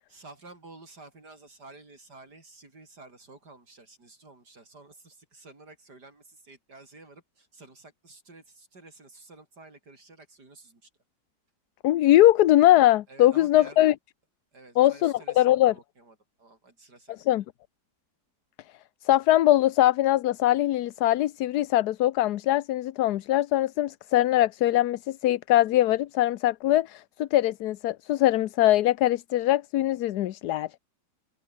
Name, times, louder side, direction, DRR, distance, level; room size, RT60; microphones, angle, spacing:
voice 1, 0.1-10.9 13.1-13.8 14.5-17.3, right 3 dB, 90° right, 6.0 m, -51 dB
voice 2, 11.8-13.9 14.8-15.7 17.3-17.4 19.0-30.9, left 14 dB, 75° left, 1.2 m, -22 dB
open air
omnidirectional pair, 1.7 m